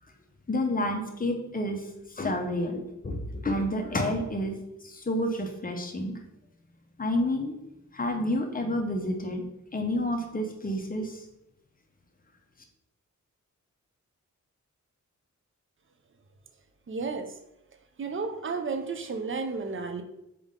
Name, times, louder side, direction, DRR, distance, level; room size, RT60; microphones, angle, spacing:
voice 1, 0.5-1.8 2.2-4.5 4.8-6.1 7.0-7.6 7.9-9.4 9.7-11.2, left 1 dB, 30° left, 3 dB, 0.7 m, -29 dB
voice 2, 16.9-17.3 18.0-20.0, right 4 dB, 40° right, 6 dB, 0.5 m, -32 dB
4.1 x 3.5 x 3.7 m, 0.88 s
wide cardioid pair, 125°, 30 cm